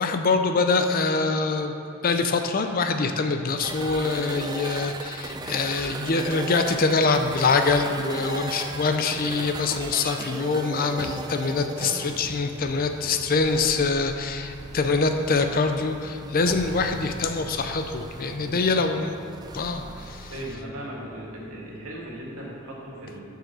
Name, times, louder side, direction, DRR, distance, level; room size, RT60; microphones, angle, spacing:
voice 1, 0.0-1.8 2.0-19.1 19.5-20.3, left 4 dB, 45° left, 7 dB, 0.5 m, -24 dB
sound 1, 3.6-20.5, right 3 dB, 20° right, 0.4 m, -37 dB
voice 2, 18.3-18.8 20.3-23.2, right 1 dB, 80° right, -4 dB, 2.2 m, -38 dB
7.7 x 5.7 x 6.2 m, 2.8 s
head